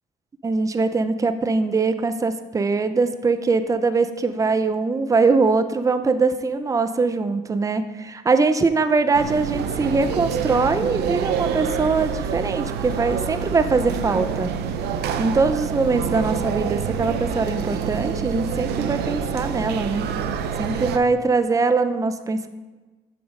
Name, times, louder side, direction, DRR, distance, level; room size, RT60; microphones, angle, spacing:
voice 1, 0.4-14.5 15.2-20.1 20.6-22.5, right 4 dB, 20° right, 10 dB, 0.6 m, -22 dB
sound 1, 9.1-21.0, right 7 dB, 75° right, 0.8 m, -27 dB
9.5 x 7.1 x 5.0 m, 1.2 s
cardioid pair, 110°, 17 cm